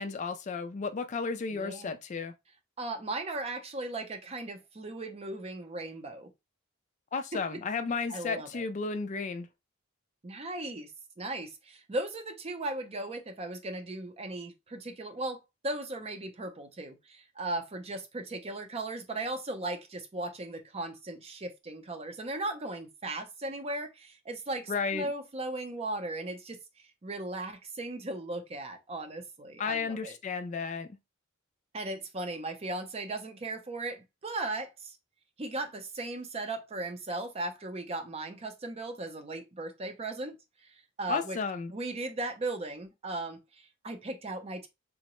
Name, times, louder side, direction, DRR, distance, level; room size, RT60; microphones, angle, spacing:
voice 1, 0.0-2.3 7.1-9.5 24.7-25.1 29.6-30.9 41.1-41.7, left 4 dB, 35° left, 0.3 m, -33 dB
voice 2, 1.5-1.9 2.8-6.3 7.3-7.6 8.1-8.7 10.2-10.9 11.2-26.6 27.0-30.2 31.7-35.0 35.4-40.4 40.6-41.4 41.7-44.7, right 2 dB, 30° right, 0.5 m, -37 dB
3.7 x 2.1 x 3.0 m
head